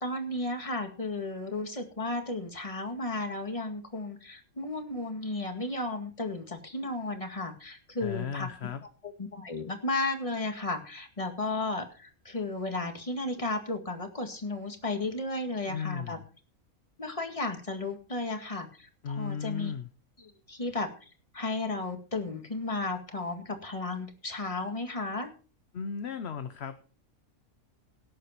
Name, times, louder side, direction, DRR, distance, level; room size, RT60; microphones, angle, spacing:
voice 1, 0.0-8.5 9.0-16.2 17.0-19.7 20.2-25.3, left 2 dB, 25° left, 5 dB, 2.0 m, -34 dB
voice 2, 8.0-8.8 15.7-16.2 19.0-19.9 25.7-26.8, left 7 dB, 55° left, 10 dB, 1.0 m, -35 dB
18.0 x 8.3 x 4.5 m, 0.38 s
omnidirectional pair, 1.5 m